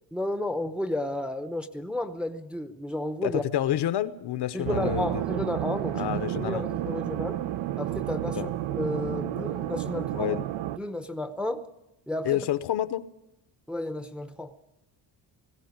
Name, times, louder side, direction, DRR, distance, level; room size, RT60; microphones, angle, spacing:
voice 1, 0.1-3.4 4.5-6.1 6.4-7.4 7.8-10.4 10.8-11.6 12.1-12.4 13.7-14.5, left 1 dB, ahead, 10 dB, 0.7 m, -32 dB
voice 2, 3.2-5.1 5.9-6.7 8.4-8.5 10.1-10.4 12.3-13.1, left 12 dB, 60° left, 13 dB, 0.9 m, -28 dB
sound 1, 4.6-10.8, right 13 dB, 80° right, 0.8 m, -31 dB
19.0 x 16.0 x 9.5 m, 0.93 s
cardioid pair, 150°, 46 cm